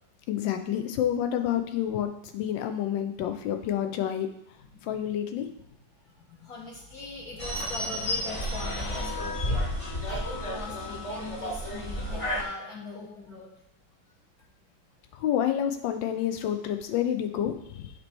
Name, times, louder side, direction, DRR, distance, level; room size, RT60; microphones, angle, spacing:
voice 1, 0.3-4.3 4.8-5.5 15.1-17.9, left 10 dB, 85° left, 7 dB, 1.4 m, -29 dB
voice 2, 4.7-5.1 6.3-9.6 10.1-13.5, left 3 dB, 55° left, -5 dB, 1.6 m, -41 dB
sound 1, 7.4-12.4, left 1 dB, 30° left, 0.6 m, -31 dB
8.2 x 3.0 x 4.3 m, 0.75 s
omnidirectional pair, 2.0 m